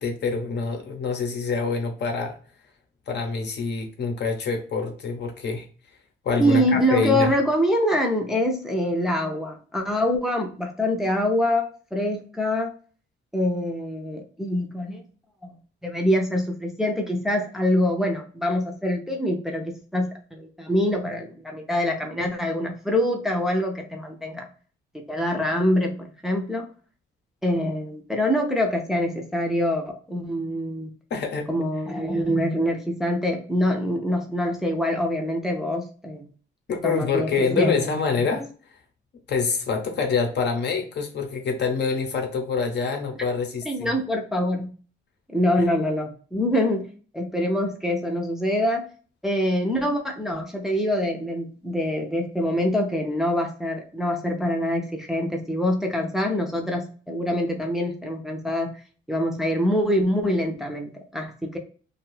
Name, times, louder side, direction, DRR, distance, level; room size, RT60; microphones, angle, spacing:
voice 1, 0.0-2.4 3.1-5.7 6.2-7.3 31.1-31.5 36.7-38.5 39.3-43.9, left 4 dB, 60° left, 4 dB, 0.8 m, -26 dB
voice 2, 6.4-12.7 13.3-15.0 15.4-15.5 15.8-24.5 25.1-26.7 27.4-30.9 31.5-36.3 36.8-37.8 43.7-44.7 45.3-46.9 47.1-48.9 49.2-58.7 59.1-61.6, equal, ahead, 2 dB, 0.5 m, -25 dB
2.6 x 2.3 x 3.1 m, 0.40 s
cardioid pair, 115°, 20 cm